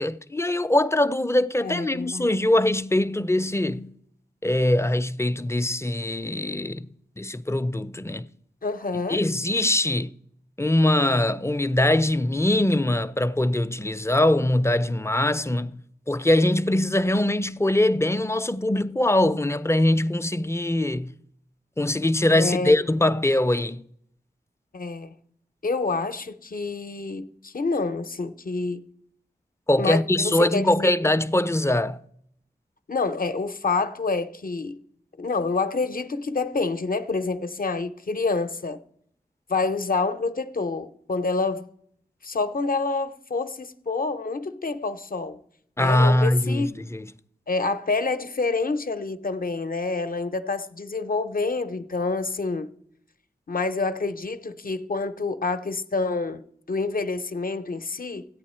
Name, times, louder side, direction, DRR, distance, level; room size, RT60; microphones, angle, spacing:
voice 1, 0.0-3.9 4.4-6.9 7.2-8.3 9.1-10.1 10.6-15.8 16.1-21.1 21.8-23.8 29.7-32.0 45.8-47.1, left 1 dB, 15° left, 0.4 m, -22 dB
voice 2, 1.6-2.3 8.6-9.2 22.3-22.8 24.7-25.1 25.6-28.9 29.8-30.9 32.9-34.8 35.2-38.8 39.5-41.7 42.2-45.4 45.8-46.7 47.5-52.7 53.5-58.3, left 3 dB, 60° left, 0.6 m, -27 dB
14.5 x 8.8 x 4.3 m
wide cardioid pair, 55°, 17 cm